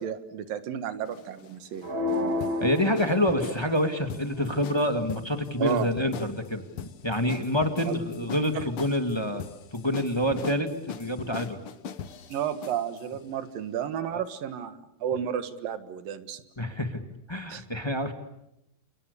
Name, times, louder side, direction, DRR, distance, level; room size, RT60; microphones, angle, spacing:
voice 1, 0.0-1.9 5.6-5.9 7.9-8.0 8.5-8.6 12.3-16.4 17.5-17.6, right 9 dB, 75° right, 11 dB, 3.2 m, -32 dB
sound 1, 1.0-13.1, left 7 dB, 60° left, 1.4 m, -41 dB
sound 2, 1.8-3.9, left 1 dB, 45° right, 5.1 m, -31 dB
voice 2, 2.6-9.4 9.7-11.6 14.1-14.2 16.6-17.0 17.3-18.1, left 1 dB, 10° left, 6 dB, 1.3 m, -27 dB
30.0 x 28.5 x 7.0 m, 0.81 s
omnidirectional pair, 4.1 m